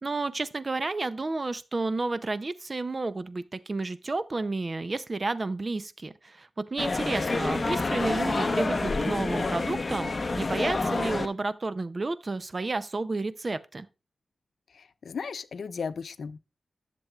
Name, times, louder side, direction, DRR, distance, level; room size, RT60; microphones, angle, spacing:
voice 1, 0.0-13.9, right 3 dB, 35° right, 0.5 m, -31 dB
sound 1, 6.8-11.3, left 3 dB, 40° left, 0.8 m, -28 dB
voice 2, 14.7-16.4, left 5 dB, 85° left, 0.5 m, -36 dB
11.0 x 6.9 x 2.3 m
wide cardioid pair, 110°, 0 cm